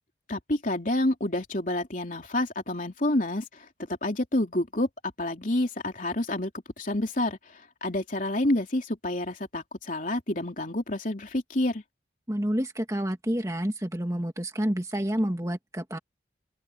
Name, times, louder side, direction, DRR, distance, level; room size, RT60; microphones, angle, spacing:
voice 1, 0.3-3.4 4.0-4.9 5.2-6.5 6.8-7.4 7.8-11.8, left 1 dB, 45° left, 3.5 m, -28 dB
voice 2, 12.3-16.0, equal, 15° right, 1.8 m, -29 dB
open air
head